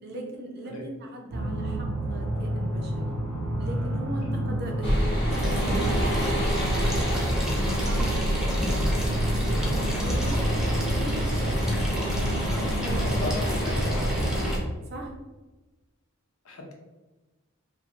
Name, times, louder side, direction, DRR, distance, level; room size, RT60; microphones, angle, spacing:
voice 1, 0.0-3.1 3.6-6.8 7.4-11.6 12.0-13.1 14.9-15.1, right 1 dB, 50° right, 0 dB, 0.6 m, -39 dB
sound 1, 1.3-14.3, right 1 dB, 85° right, 0.7 m, -30 dB
sound 2, 4.8-14.6, equal, 25° left, 0.9 m, -27 dB
sound 3, 5.3-14.6, equal, 5° right, 0.4 m, -36 dB
voice 2, 12.9-14.0 16.4-16.7, left 1 dB, 85° left, 0 dB, 0.7 m, -36 dB
2.7 x 2.5 x 2.8 m, 1.2 s
head